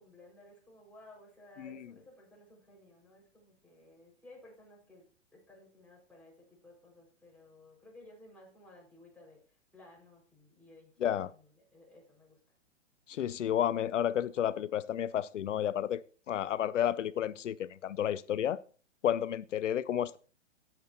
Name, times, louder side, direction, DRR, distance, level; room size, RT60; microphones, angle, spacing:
voice 1, 0.0-5.1 5.3-12.4, left 1 dB, 5° left, 5.3 m, -57 dB
voice 2, 11.0-11.3 13.1-16.0 16.3-18.6 19.0-20.2, left 10 dB, 90° left, 0.5 m, -31 dB
17.0 x 7.5 x 2.9 m
hypercardioid pair, 130°, 36 cm